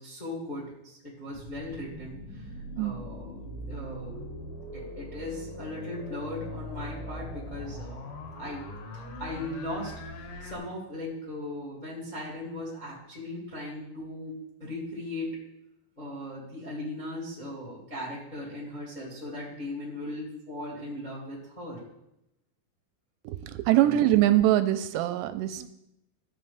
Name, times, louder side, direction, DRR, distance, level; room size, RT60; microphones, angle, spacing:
voice 1, 0.0-8.1 8.3-15.4 15.9-21.8 23.7-24.0, left 1 dB, 15° left, -5 dB, 1.8 m, -38 dB
sound 1, 1.3-10.6, left 1 dB, 90° left, 3.6 m, -41 dB
voice 2, 23.3-25.7, right 13 dB, 85° right, 11 dB, 2.6 m, -23 dB
15.0 x 5.8 x 3.4 m, 0.85 s
omnidirectional pair, 5.1 m